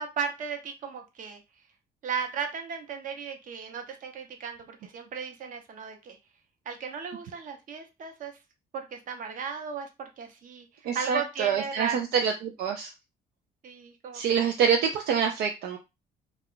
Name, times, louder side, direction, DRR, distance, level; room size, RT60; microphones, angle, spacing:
voice 1, 0.0-1.4 2.0-6.2 6.7-8.3 8.7-10.7 10.9-12.0 13.6-14.2, right 6 dB, 50° right, 5 dB, 0.8 m, -35 dB
voice 2, 10.9-12.9 14.1-15.8, right 7 dB, 70° right, 3 dB, 0.4 m, -26 dB
2.3 x 2.2 x 3.7 m, 0.25 s
cardioid pair, 110°, 17 cm